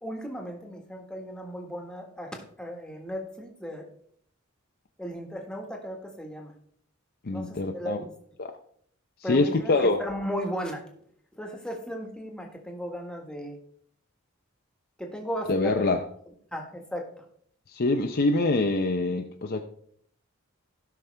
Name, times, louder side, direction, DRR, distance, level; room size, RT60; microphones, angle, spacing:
voice 1, 0.0-3.9 5.0-6.5 7.3-8.1 9.2-10.8 11.3-13.6 15.0-15.9 16.5-17.2, equal, 5° left, 1.6 m, -36 dB
voice 2, 7.2-8.0 8.4-8.5 9.3-10.0 15.5-16.0 17.7-19.6, left 2 dB, 50° left, 0.6 m, -24 dB
16.5 x 6.0 x 3.4 m
head